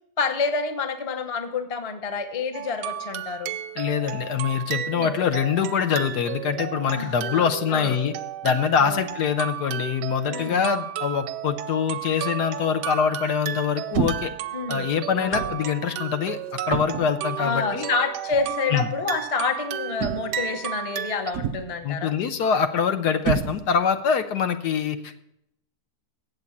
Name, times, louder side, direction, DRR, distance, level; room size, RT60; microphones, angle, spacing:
voice 1, 0.2-3.6 4.9-5.1 6.9-8.0 8.8-9.1 10.3-10.6 14.5-14.9 15.2-15.6 17.4-22.1, left 4 dB, 30° left, 8 dB, 0.6 m, -28 dB
sound 1, 2.5-21.3, right 11 dB, 85° right, 1.2 m, -33 dB
voice 2, 3.8-8.1 8.4-14.3 14.7-16.4 16.7-17.9 18.7-18.9 21.8-25.2, left 7 dB, 80° left, 9 dB, 1.4 m, -24 dB
sound 2, 13.9-14.4 15.3-15.6 16.7-17.2 18.3-18.5 20.0-20.5 21.3-21.8 23.2-23.9, right 8 dB, 70° right, 0.9 m, -29 dB
7.9 x 7.7 x 8.5 m, 0.79 s
omnidirectional pair, 1.8 m